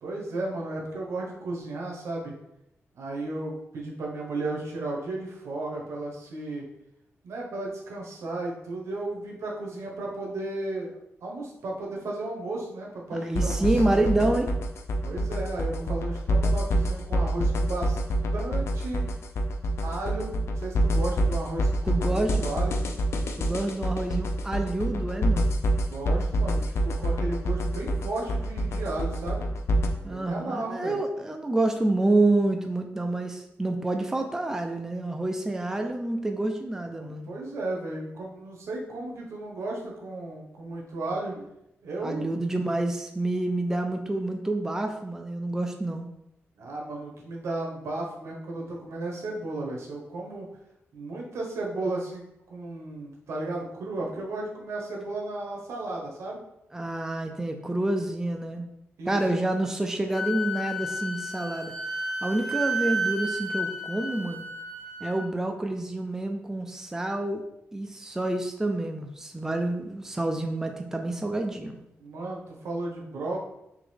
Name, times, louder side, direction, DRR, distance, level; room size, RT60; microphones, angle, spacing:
voice 1, 0.0-2.3 2.9-6.6 7.2-14.4 15.0-18.0 18.3-19.0 19.8-22.8 25.8-29.4 30.0-31.0 37.0-41.3 41.8-42.4 46.6-50.5 50.9-56.4 59.0-59.4 72.0-73.4, right 2 dB, 80° right, -1 dB, 1.0 m, -34 dB
voice 2, 13.2-14.5 21.9-22.5 23.4-25.6 30.0-37.3 42.0-46.1 56.7-58.7 59.1-61.7 62.2-64.4 65.0-67.4 67.7-71.8, right 2 dB, 10° right, 4 dB, 0.4 m, -28 dB
sound 1, 13.3-29.9, right 1 dB, 70° left, 0.5 m, -26 dB
Wind instrument woodwind instrument, 60.1-65.3, right 1 dB, 5° left, 1.1 m, -32 dB
3.8 x 2.9 x 3.2 m, 0.81 s
cardioid pair, 95°, 5 cm